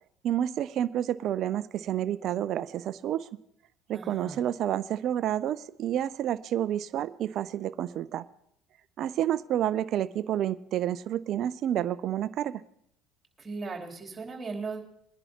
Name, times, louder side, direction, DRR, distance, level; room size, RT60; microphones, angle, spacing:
voice 1, 0.2-3.3 3.9-8.2 9.0-12.6, right 11 dB, 55° right, 15 dB, 0.4 m, -29 dB
voice 2, 3.9-4.4 13.4-14.8, right 4 dB, 25° right, -1 dB, 3.2 m, -37 dB
21.5 x 10.5 x 2.9 m, 0.73 s
hypercardioid pair, 70°, 0 cm